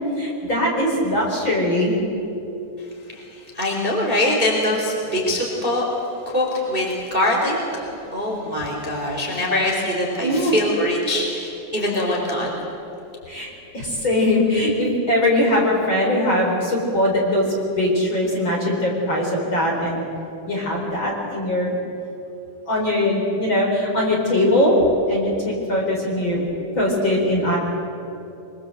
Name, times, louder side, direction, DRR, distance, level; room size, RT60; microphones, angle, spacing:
voice 1, 0.2-2.0 10.2-10.6 13.3-17.5 17.8-20.0 20.5-21.8 22.7-24.8 25.1-26.4 26.7-27.6, left 1 dB, 25° left, -2 dB, 4.6 m, -21 dB
voice 2, 3.5-5.8 6.3-7.8 8.1-12.5, left 1 dB, 15° right, -1 dB, 3.5 m, -23 dB
24.5 x 24.0 x 7.9 m, 2.9 s
omnidirectional pair, 5.0 m